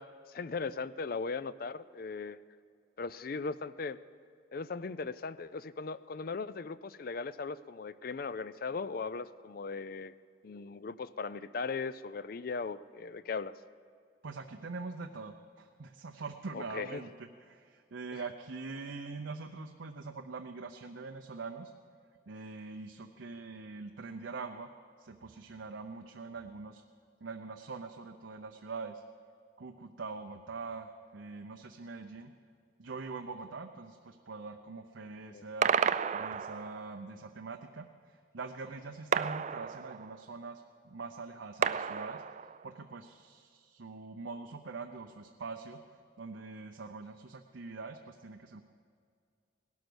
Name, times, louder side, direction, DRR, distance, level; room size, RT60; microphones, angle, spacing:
voice 1, 0.0-2.4 3.0-4.0 4.5-10.1 10.4-13.6 16.5-17.0 18.1-18.2 35.2-35.5, left 4 dB, 50° left, 16 dB, 0.4 m, -38 dB
voice 2, 14.2-21.7 22.3-24.7 25.0-26.8 27.2-29.0 29.6-32.3 32.8-35.7 36.1-37.9 38.3-42.2 42.6-45.8 46.2-48.6, right 4 dB, 80° right, 5 dB, 0.7 m, -43 dB
sound 1, 35.6-37.0 39.1-40.3 41.6-42.8, right 7 dB, 35° right, 0.3 m, -32 dB
18.5 x 11.5 x 6.2 m, 2.2 s
head